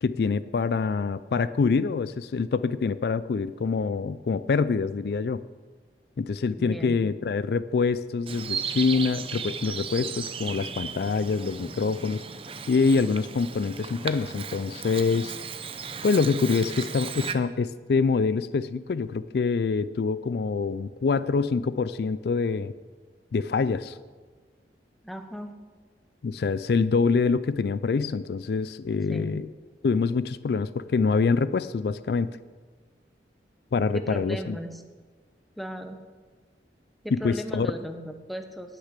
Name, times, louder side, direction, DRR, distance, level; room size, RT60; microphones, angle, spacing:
voice 1, 0.0-5.4 6.2-12.2 12.7-15.4 16.0-22.7 23.3-24.0 26.2-29.5 29.8-32.3 33.7-34.6 37.2-37.7, left 4 dB, 60° left, 15 dB, 0.4 m, -25 dB
voice 2, 6.6-7.0 25.0-25.6 29.1-29.3 33.9-34.8 35.6-36.0 37.0-38.8, equal, ahead, 6 dB, 0.9 m, -37 dB
Bird vocalization bird call bird song, 8.3-17.3, right 6 dB, 30° right, 0.6 m, -36 dB
18.0 x 6.6 x 6.6 m, 1.5 s
head